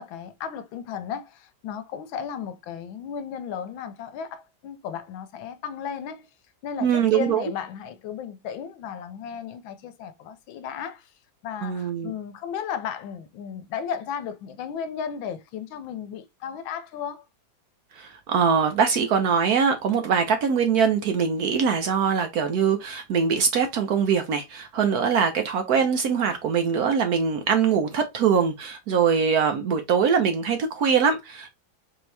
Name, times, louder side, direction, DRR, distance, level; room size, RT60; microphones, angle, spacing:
voice 1, 0.0-6.3 6.6-11.1 11.4-17.2, left 7 dB, 90° left, 1.4 m, -34 dB
voice 2, 6.8-7.4 11.6-12.1 17.9-31.6, right 6 dB, 65° right, 1.0 m, -22 dB
4.3 x 2.8 x 3.2 m
omnidirectional pair, 2.1 m